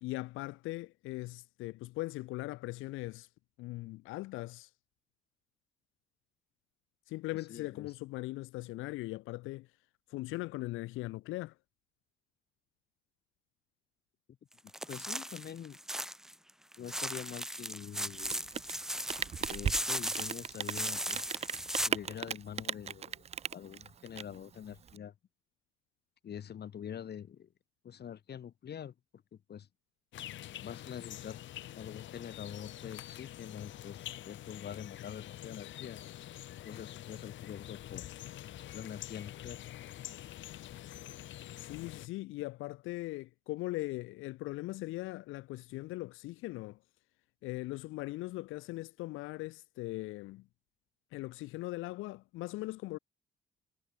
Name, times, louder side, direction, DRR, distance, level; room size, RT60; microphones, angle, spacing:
voice 1, 0.0-3.3 3.6-4.7 7.1-9.7 10.1-11.5 41.6-46.8 47.4-50.4 51.1-53.0, left 19 dB, 90° left, 0.4 m, -40 dB
voice 2, 7.3-7.9 14.9-15.8 16.8-18.5 19.4-21.2 21.9-23.3 23.5-25.1 26.2-27.5 27.8-28.9 29.3-29.7 30.6-31.4 31.8-36.1 36.7-38.1 38.7-39.6, left 9 dB, 55° left, 1.9 m, -45 dB
sound 1, 14.7-16.3 16.7-21.9, equal, ahead, 1.0 m, -37 dB
Rain, 18.1-25.0, right 8 dB, 35° right, 0.4 m, -38 dB
sound 2, 30.1-42.1, left 13 dB, 70° left, 0.9 m, -46 dB
cardioid pair, 90°, 20 cm